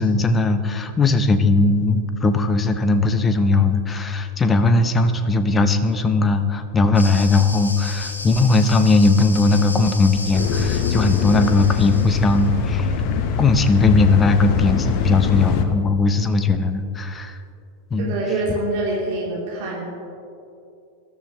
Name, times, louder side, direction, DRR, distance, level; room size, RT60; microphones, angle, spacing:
voice 1, 0.0-12.9 13.4-17.4 17.9-18.1, left 3 dB, 20° left, 10 dB, 0.9 m, -18 dB
sound 1, 6.9-12.5, left 2 dB, 80° left, 1.4 m, -34 dB
sound 2, 10.3-15.7, left 7 dB, 45° left, 1.0 m, -23 dB
voice 2, 18.0-19.8, right 2 dB, 45° right, -5 dB, 3.5 m, -25 dB
20.5 x 13.0 x 3.2 m, 2.6 s
figure-of-eight pair, 90°, 0 cm